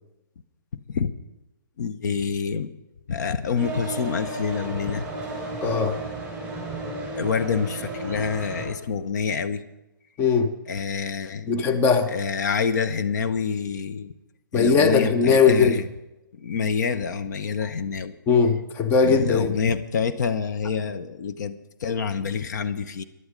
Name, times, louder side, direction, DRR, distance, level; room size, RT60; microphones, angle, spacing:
voice 1, 1.8-2.7 3.1-5.0 7.1-9.6 10.7-11.5 12.1-14.1 14.5-15.9 16.3-18.1 19.0-23.0, left 6 dB, 55° left, 0.8 m, -27 dB
sound 1, 3.5-8.7, right 2 dB, 10° right, 5.4 m, -33 dB
voice 2, 5.6-6.0 10.2-10.5 11.5-12.1 14.5-15.8 18.3-19.5, left 5 dB, 20° left, 0.8 m, -19 dB
15.0 x 11.0 x 5.2 m
hypercardioid pair, 135°, 11 cm